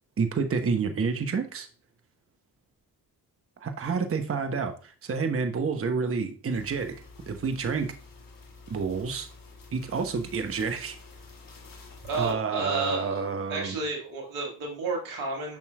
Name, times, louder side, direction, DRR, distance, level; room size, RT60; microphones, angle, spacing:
voice 1, 0.2-1.7 3.6-7.0 7.3-7.9 8.7-9.3 9.7-11.0 12.1-13.8, right 5 dB, 30° right, 7 dB, 0.9 m, -29 dB
sound 1, 6.5-12.3, left 3 dB, 45° left, 1.7 m, -49 dB
voice 2, 12.0-13.2 13.5-15.6, right 3 dB, 80° right, 1 dB, 1.8 m, -31 dB
7.2 x 5.9 x 2.2 m, 0.38 s
hypercardioid pair, 40°, 47 cm